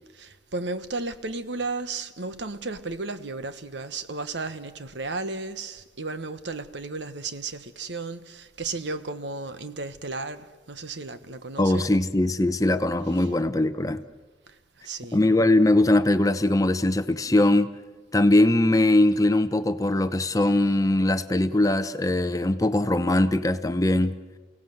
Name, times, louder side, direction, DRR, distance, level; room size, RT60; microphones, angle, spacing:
voice 1, 0.1-12.0 13.1-13.3 14.8-15.2, right 3 dB, 70° right, 1.2 m, -34 dB
voice 2, 11.6-14.0 15.1-17.7 18.1-24.1, left 1 dB, 20° left, 0.7 m, -21 dB
29.0 x 17.0 x 7.9 m
head